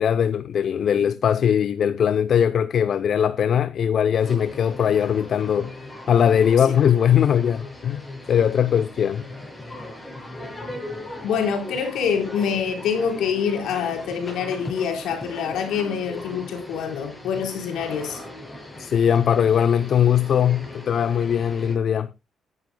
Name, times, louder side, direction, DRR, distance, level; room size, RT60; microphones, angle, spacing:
voice 1, 0.0-5.7 6.1-9.3 18.8-22.1, left 8 dB, 60° left, 0.6 m, -20 dB
sound 1, 4.2-21.8, left 1 dB, 15° left, 7.5 m, -38 dB
voice 2, 11.2-18.2, left 7 dB, 80° left, 4.1 m, -26 dB
19.5 x 11.0 x 2.2 m
cardioid pair, 90°, 0 cm